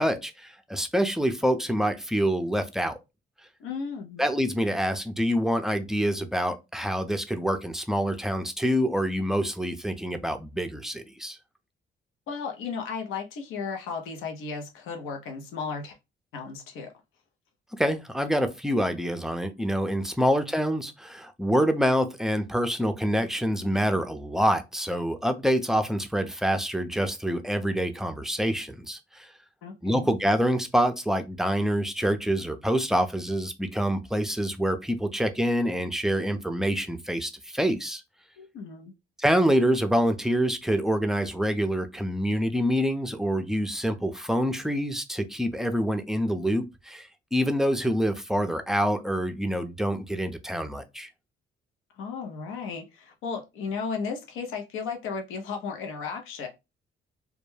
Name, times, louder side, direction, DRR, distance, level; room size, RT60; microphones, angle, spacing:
voice 1, 0.0-3.0 4.2-11.4 17.7-29.3 29.8-38.0 39.2-51.1, equal, ahead, 0.4 m, -26 dB
voice 2, 3.6-4.2 12.3-15.9 16.3-16.9 29.6-30.1 38.4-38.9 52.0-56.5, left 5 dB, 90° left, 0.6 m, -34 dB
2.2 x 2.1 x 3.1 m
cardioid pair, 90°, 20 cm